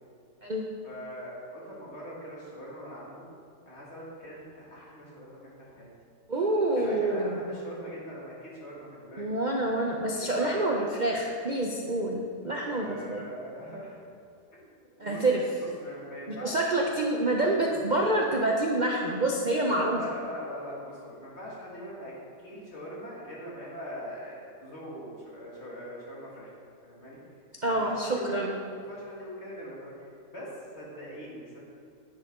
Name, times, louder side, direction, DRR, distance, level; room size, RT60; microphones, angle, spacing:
voice 1, 0.8-3.3 3.7-5.9 6.8-9.2 10.1-10.7 12.6-14.0 14.5-14.7 15.0-16.6 19.9-22.1 22.4-26.5 26.8-27.2 27.6-28.4 28.7-31.6, equal, 40° left, -6 dB, 2.3 m, -42 dB
voice 2, 6.3-7.4 9.2-13.2 15.0-15.4 16.3-20.0 27.6-28.6, right 1 dB, 70° right, -1 dB, 0.4 m, -27 dB
10.0 x 7.0 x 3.6 m, 2.5 s
omnidirectional pair, 1.8 m